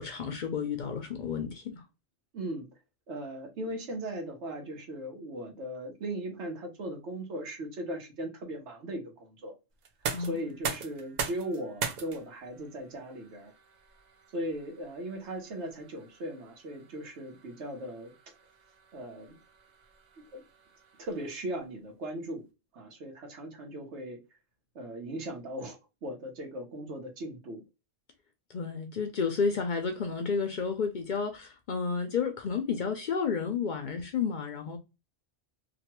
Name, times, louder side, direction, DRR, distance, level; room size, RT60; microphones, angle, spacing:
voice 1, 0.0-1.8 10.1-10.4 28.5-34.8, left 5 dB, 60° left, 0.5 m, -31 dB
voice 2, 2.3-2.7 3.1-9.5 10.2-13.5 14.3-18.1 18.9-19.4 20.2-20.4 21.0-22.5 22.7-24.2 24.7-27.6, right 1 dB, 80° right, 1.2 m, -38 dB
sound 1, 9.8-21.6, right 6 dB, 55° right, 0.5 m, -42 dB
3.0 x 2.2 x 2.9 m
omnidirectional pair, 1.2 m